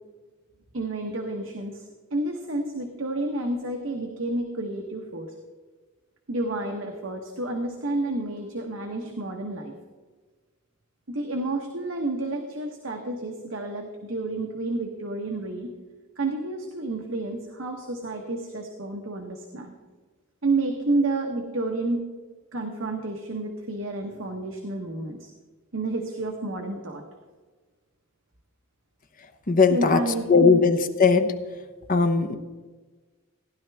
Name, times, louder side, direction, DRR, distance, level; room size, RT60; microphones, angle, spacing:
voice 1, 0.7-5.3 6.3-9.7 11.1-15.7 16.2-19.7 20.4-22.0 22.5-25.3 25.7-27.0 29.7-30.5, right 2 dB, 65° right, 3 dB, 1.1 m, -30 dB
voice 2, 29.5-30.0 30.3-31.3 31.9-32.4, left 4 dB, 40° left, 8 dB, 0.9 m, -19 dB
16.0 x 11.0 x 3.5 m, 1.3 s
head